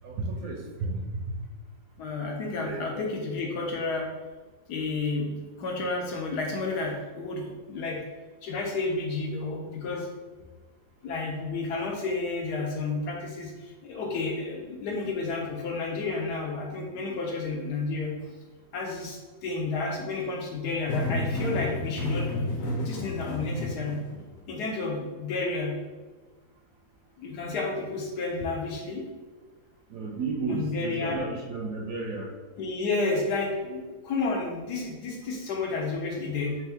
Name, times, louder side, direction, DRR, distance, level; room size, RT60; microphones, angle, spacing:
voice 1, 0.0-1.2 2.6-3.2 5.6-5.7 29.9-32.3 36.5-36.6, right 3 dB, 70° right, -2 dB, 0.8 m, -33 dB
voice 2, 2.0-4.1 4.7-8.0 8.4-10.1 11.0-18.3 18.7-22.3 22.8-24.0 24.5-25.8 27.2-29.1 30.5-31.2 32.6-36.6, left 3 dB, 70° left, 0 dB, 1.1 m, -31 dB
sound 1, 20.9-24.4, left 1 dB, 85° left, 1.4 m, -31 dB
3.5 x 3.0 x 3.4 m, 1.3 s
omnidirectional pair, 1.9 m